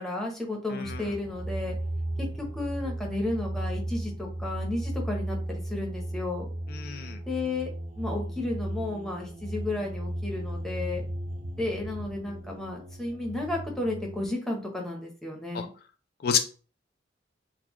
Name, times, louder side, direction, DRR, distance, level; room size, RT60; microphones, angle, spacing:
voice 1, 0.0-1.7 2.2-6.5 7.3-7.7 8.0-11.0 11.6-15.7, left 2 dB, ahead, -1 dB, 0.8 m, -33 dB
sound 1, 0.8-14.3, right 1 dB, 45° right, 0.5 m, -35 dB
voice 2, 6.7-7.2 15.5-15.6 16.2-16.4, left 8 dB, 55° left, 6 dB, 0.4 m, -28 dB
3.8 x 2.3 x 3.0 m, 0.37 s
head